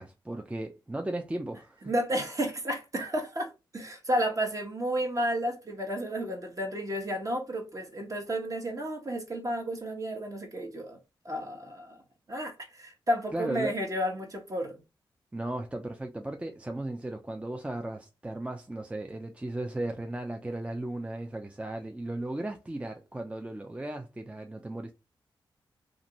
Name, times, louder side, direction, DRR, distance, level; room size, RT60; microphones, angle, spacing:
voice 1, 0.0-1.9 13.3-13.8 15.3-24.9, right 1 dB, 15° right, 0.4 m, -36 dB
voice 2, 1.8-11.0 11.2-12.0 12.3-14.8, equal, 35° right, 1.1 m, -32 dB
2.6 x 2.5 x 2.9 m
cardioid pair, 55°, 9 cm